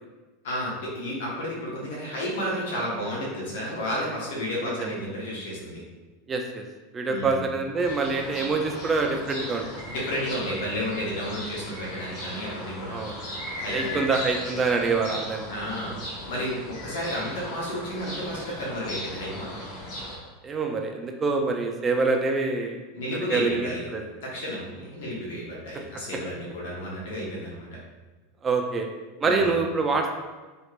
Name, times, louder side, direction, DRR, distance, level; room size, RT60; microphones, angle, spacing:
voice 1, 0.4-5.8 7.1-7.4 9.9-13.0 13.6-14.0 15.5-16.0 16.3-19.6 22.9-23.9 24.2-27.7 29.2-29.5, equal, 75° left, -5 dB, 1.2 m, -32 dB
voice 2, 6.3-6.6 6.9-9.8 12.9-13.2 13.7-15.5 20.4-22.8 23.3-24.0 28.4-28.9 29.2-30.1, right 4 dB, 25° right, 3 dB, 0.4 m, -26 dB
sound 1, 7.8-20.2, left 1 dB, 50° left, 1.1 m, -37 dB
3.2 x 2.9 x 2.5 m, 1.2 s
hypercardioid pair, 100°, 0 cm